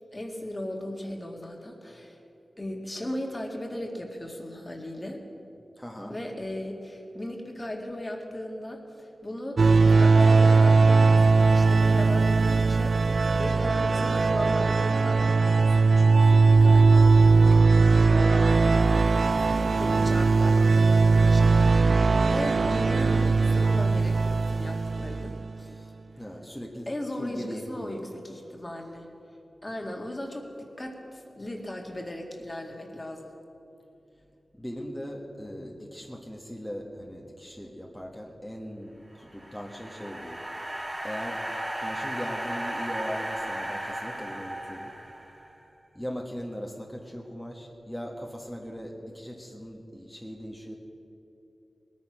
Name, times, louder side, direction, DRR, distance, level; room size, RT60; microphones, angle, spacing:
voice 1, 0.1-2.2 2.6-5.2 6.1-9.6 9.9-17.1 17.4-25.7 26.9-29.1 29.6-33.3, left 1 dB, 25° left, 2 dB, 2.0 m, -37 dB
voice 2, 5.8-6.1 19.6-20.0 25.7-26.9 27.2-28.0 29.8-29.9 34.5-40.4 41.0-41.4 41.7-44.9 45.9-50.7, equal, 5° left, -1 dB, 1.6 m, -39 dB
sound 1, 9.6-25.5, right 4 dB, 65° right, 0.3 m, -20 dB
sound 2, 39.2-45.5, right 1 dB, 20° right, 1.9 m, -35 dB
19.5 x 9.5 x 6.2 m, 2.9 s
cardioid pair, 55°, 0 cm